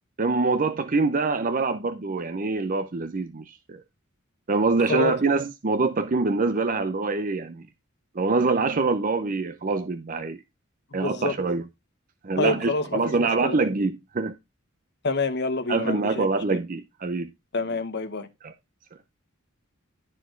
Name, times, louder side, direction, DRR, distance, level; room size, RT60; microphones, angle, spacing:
voice 1, 0.2-3.8 4.5-7.6 8.1-10.4 10.9-11.6 12.2-14.4 15.7-17.3 18.4-18.5, right 3 dB, 40° right, 0.6 m, -25 dB
voice 2, 10.9-11.3 12.4-13.6 15.0-16.3 17.5-18.3, left 3 dB, 55° left, 1.1 m, -27 dB
12.0 x 4.6 x 4.5 m
head